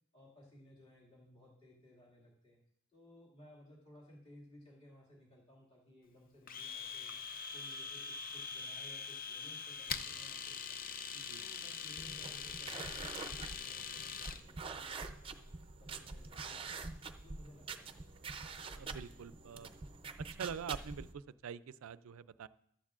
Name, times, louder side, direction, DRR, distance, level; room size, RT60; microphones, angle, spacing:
voice 1, 0.1-2.6 2.9-7.1 7.5-11.0 11.4-15.4 15.8-16.9 17.2-18.0, left 1 dB, 25° left, -4 dB, 2.2 m, -60 dB
Domestic sounds home sounds, 6.5-14.4, left 6 dB, 40° left, 0.5 m, -43 dB
sound 1, 12.0-21.1, right 4 dB, 25° right, 0.5 m, -46 dB
voice 2, 18.7-19.7 20.3-22.5, right 7 dB, 90° right, 16 dB, 0.4 m, -45 dB
14.5 x 12.0 x 2.5 m, 0.72 s
head